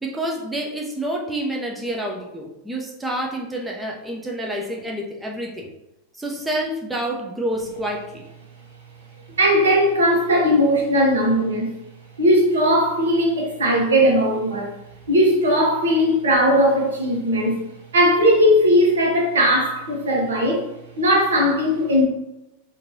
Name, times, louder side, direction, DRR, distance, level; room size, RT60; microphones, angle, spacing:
voice 1, 0.0-5.7 6.1-8.2, right 1 dB, 5° right, 0.7 m, -28 dB
voice 2, 9.4-11.7 12.2-14.7 15.1-17.6 17.9-20.6 21.0-22.0, equal, 65° right, 1.2 m, -18 dB
5.2 x 2.8 x 2.7 m
figure-of-eight pair, 90°, 0 cm